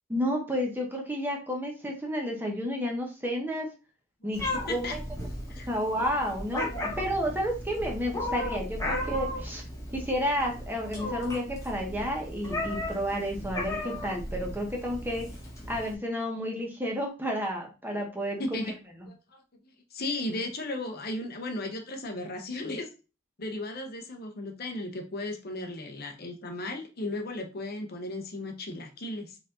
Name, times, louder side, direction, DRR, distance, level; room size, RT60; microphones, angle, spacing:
voice 1, 0.1-3.7 4.2-5.0 5.7-9.6 9.9-15.3 15.7-18.7, equal, 10° right, 0 dB, 1.0 m, -31 dB
Meow, 4.3-15.9, left 1 dB, 15° left, 1.3 m, -35 dB
voice 2, 18.4-18.7 19.1-19.4 19.9-22.9 23.4-29.4, left 2 dB, 50° left, 4 dB, 0.8 m, -35 dB
4.7 x 2.7 x 3.7 m, 0.31 s
head